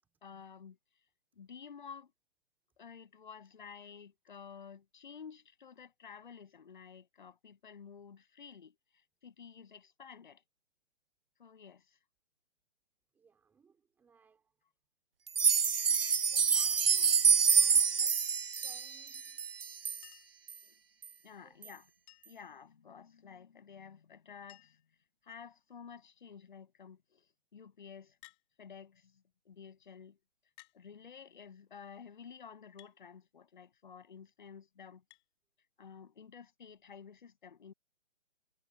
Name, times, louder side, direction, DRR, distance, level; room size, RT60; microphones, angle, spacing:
voice 1, 0.2-0.8 1.4-2.1 2.8-8.8 9.2-10.4 11.4-12.0 20.6-20.8 21.2-21.8 22.3-24.8 25.2-28.2 28.6-30.2 30.7-35.0 35.8-37.7, left 6 dB, 45° left, 7.7 m, -52 dB
voice 2, 13.1-14.5 16.3-19.4 21.4-21.8, right 6 dB, 5° right, 3.8 m, -64 dB
sound 1, 15.3-20.0 20.5-20.6 21.0-21.1 21.6-21.7, right 6 dB, 55° right, 0.7 m, -27 dB
Chink clink, 20.0-20.5 22.1-22.5 23.9-24.0 24.2-24.3 24.5-24.9 25.7-26.1 28.2-28.5 29.5-29.6 30.6-30.8 32.8-33.0 35.1-35.3 36.7-36.8, left 35 dB, 15° left, 5.8 m, -59 dB
figure-of-eight pair, 150°, 35 cm